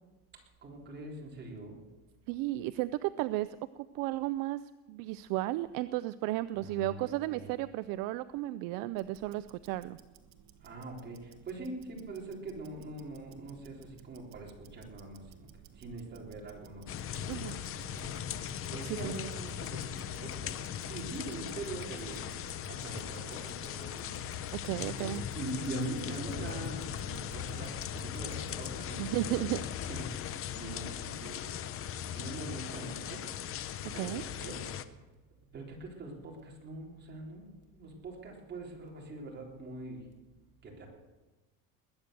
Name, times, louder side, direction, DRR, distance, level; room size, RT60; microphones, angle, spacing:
voice 1, 0.6-1.8 6.6-7.5 10.6-15.5 15.8-20.6 20.9-22.2 22.7-24.1 24.7-29.2 29.5-31.6 31.9-33.2 33.9-34.6 35.5-40.0 40.6-40.9, right 2 dB, 25° right, -1 dB, 3.8 m, -43 dB
voice 2, 2.3-4.6 4.9-10.0 17.3-17.6 18.8-19.2 24.5-25.2 29.0-29.6 33.8-34.2, right 16 dB, 65° right, 15 dB, 0.5 m, -34 dB
Tick-tock, 8.9-28.8, right 8 dB, 45° right, 1.4 m, -56 dB
sound 1, 16.9-34.9, left 10 dB, 35° left, 0.8 m, -39 dB
21.0 x 9.1 x 6.8 m, 1.2 s
cardioid pair, 145°, 38 cm